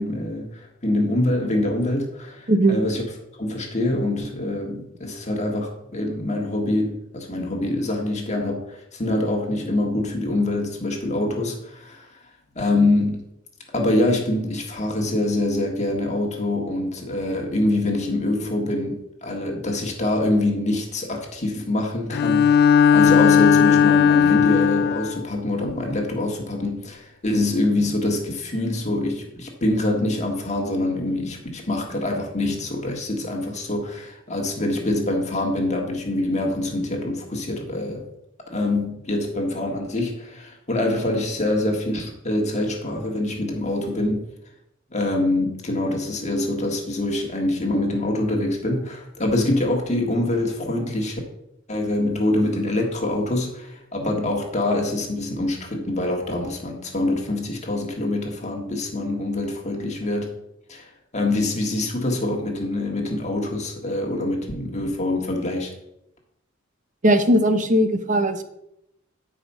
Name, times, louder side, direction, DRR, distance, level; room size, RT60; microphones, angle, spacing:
voice 1, 0.0-3.0 3.4-12.1 12.5-13.2 13.7-38.0 38.5-44.2 44.9-51.2 51.7-60.3 60.7-65.7, left 1 dB, 35° left, 1 dB, 1.5 m, -25 dB
voice 2, 2.5-2.8 67.0-68.4, right 1 dB, 40° right, 9 dB, 0.8 m, -18 dB
Bowed string instrument, 22.1-25.2, left 7 dB, 50° left, 0.3 m, -16 dB
9.2 x 5.0 x 5.5 m, 0.82 s
head